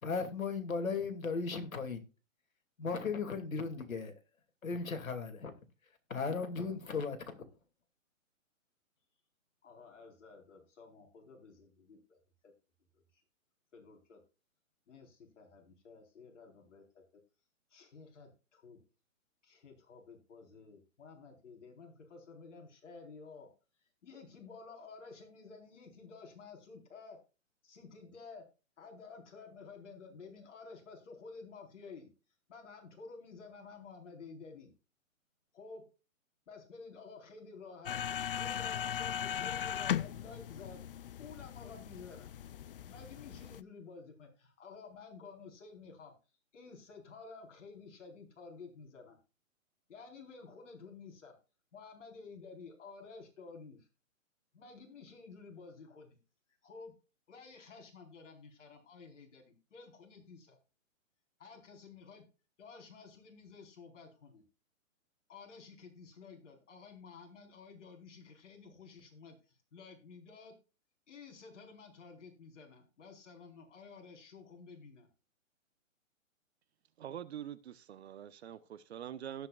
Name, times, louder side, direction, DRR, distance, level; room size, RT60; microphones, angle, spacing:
voice 1, 0.0-2.0 2.8-4.2 4.6-5.5 6.1-7.4, left 4 dB, 90° left, 2.6 m, -36 dB
voice 2, 9.6-12.5 13.1-13.2 13.7-14.2 14.9-17.0 17.7-18.8 19.4-23.5 24.0-27.2 27.6-28.5 28.8-32.1 32.5-34.7 35.5-35.9 36.5-38.0 38.4-40.8 41.2-42.3 42.8-46.1 46.5-49.2 49.9-51.4 51.7-53.9 54.5-56.2 56.6-56.9 57.3-60.6 61.4-62.3 62.6-64.4 65.3-70.6 71.1-75.1, left 4 dB, 60° left, 4.5 m, -52 dB
sound 1, 37.9-43.6, left 9 dB, 45° left, 0.5 m, -38 dB
voice 3, 77.0-79.5, right 10 dB, 50° right, 1.0 m, -44 dB
18.0 x 6.0 x 2.4 m
hypercardioid pair, 150°, 40 cm